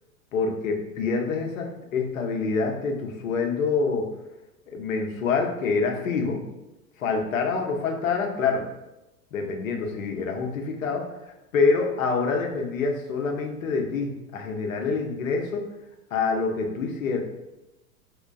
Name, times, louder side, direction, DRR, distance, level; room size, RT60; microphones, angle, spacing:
voice 1, 0.3-4.1 4.7-6.4 7.0-8.7 9.3-11.0 11.5-15.6 16.1-17.2, left 4 dB, 65° left, 3 dB, 0.7 m, -26 dB
5.0 x 2.2 x 2.4 m, 0.96 s
figure-of-eight pair, 90°, 44 cm